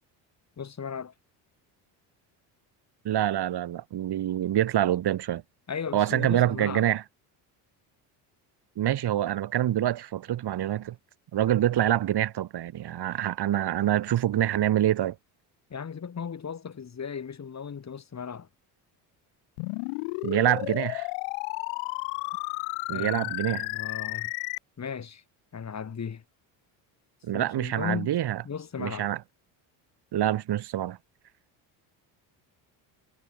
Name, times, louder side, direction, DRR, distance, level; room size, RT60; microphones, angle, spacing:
voice 1, 0.6-1.1 5.7-6.9 15.7-18.5 22.9-24.3 24.8-25.2 25.5-26.2 27.3-28.1 28.4-29.1, left 6 dB, 35° left, 6.5 m, -36 dB
voice 2, 3.0-5.4 5.9-7.0 8.8-11.0 11.3-15.2 20.2-21.1 22.9-23.7 27.2-28.4 28.8-29.2 30.1-31.0, right 12 dB, 55° right, 6.2 m, -26 dB
sound 1, 19.6-24.6, left 38 dB, 85° left, 2.2 m, -32 dB
supercardioid pair, 95°, 46 cm